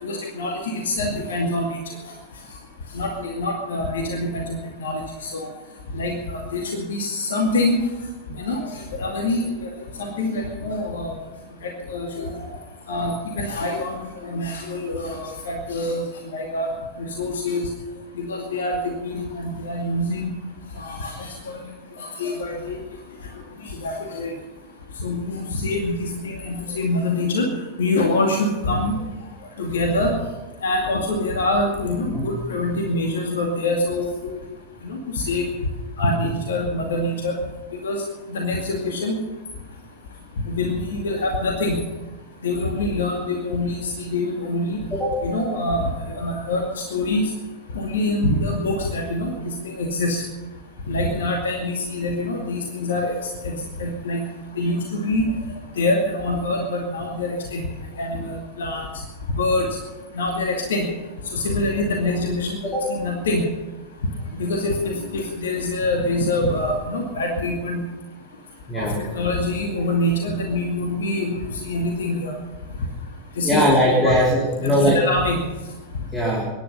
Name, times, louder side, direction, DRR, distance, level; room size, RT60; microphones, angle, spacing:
voice 1, 0.0-1.7 2.9-5.5 5.9-7.8 8.4-9.4 10.0-11.1 11.6-12.5 12.9-16.0 16.3-16.7 17.2-17.7 18.3-20.3 20.8-21.6 22.0-22.8 23.8-24.3 25.0-27.5 27.8-29.0 29.6-30.1 30.6-34.4 34.9-35.5 36.0-37.3 37.8-38.0 38.3-39.1 40.6-41.7 42.4-44.8 45.2-45.8 46.1-46.6 46.9-47.3 47.7-49.3 49.8-50.2 50.9-53.2 53.4-53.5 53.8-54.2 54.6-55.3 55.8-57.6 58.0-58.8 59.3-59.7 60.2-60.9 61.3-63.4 64.4-67.8 68.7-68.9 69.2-72.3 73.4-73.6 74.0-74.2 74.6-75.4, left 2 dB, 65° left, 1 dB, 2.3 m, -25 dB
voice 2, 73.4-75.0 76.1-76.5, equal, 10° left, -5 dB, 4.1 m, -20 dB
23.0 x 10.5 x 5.6 m, 1.1 s
figure-of-eight pair, 90°, 0 cm